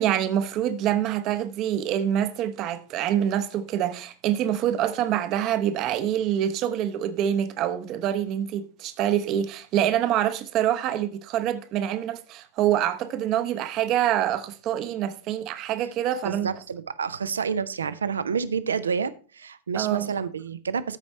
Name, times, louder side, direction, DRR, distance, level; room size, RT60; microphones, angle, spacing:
voice 1, 0.0-16.5 19.7-20.1, right 11 dB, 40° right, 0.8 m, -26 dB
voice 2, 16.2-21.0, right 6 dB, 70° right, 0.6 m, -29 dB
13.5 x 5.2 x 4.4 m
figure-of-eight pair, 90°, 0 cm